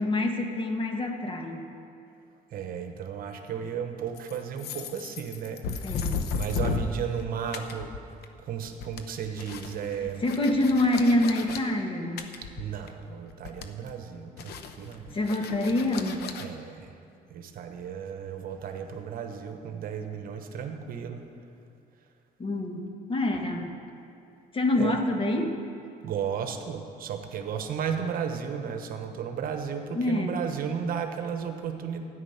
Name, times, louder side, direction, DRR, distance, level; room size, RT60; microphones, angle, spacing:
voice 1, 0.0-1.7 5.8-6.3 10.0-12.3 15.1-16.3 22.4-23.8 24.5-25.5 29.9-30.4, left 1 dB, 30° left, 4 dB, 1.4 m, -26 dB
voice 2, 2.5-5.6 6.3-7.9 8.5-10.3 12.6-15.1 16.4-16.9 17.3-21.2 24.8-25.0 26.0-32.0, right 7 dB, 60° right, 6 dB, 1.1 m, -34 dB
sound 1, 4.2-7.2 7.5-8.4 8.7-11.6 12.2-13.0 13.3-13.9 14.4-16.5, left 5 dB, 75° left, 0.9 m, -34 dB
13.0 x 9.5 x 5.8 m, 2.5 s
cardioid pair, 110°, 17 cm